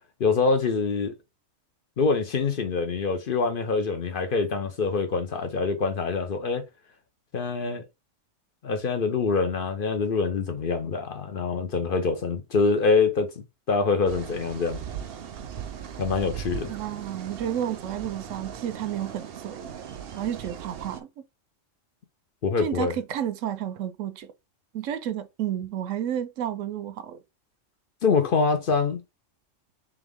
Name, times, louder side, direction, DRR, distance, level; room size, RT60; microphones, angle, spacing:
voice 1, 0.2-1.1 2.0-6.6 7.3-7.8 8.6-14.8 16.0-16.7 22.4-22.9 28.0-29.0, left 4 dB, 50° left, 0.8 m, -25 dB
sound 1, 14.1-21.0, right 8 dB, 60° right, 0.7 m, -38 dB
voice 2, 16.7-19.7 20.2-21.1 22.6-24.3 24.7-27.2, right 10 dB, 80° right, 1.0 m, -31 dB
3.5 x 3.4 x 3.5 m
omnidirectional pair, 1.3 m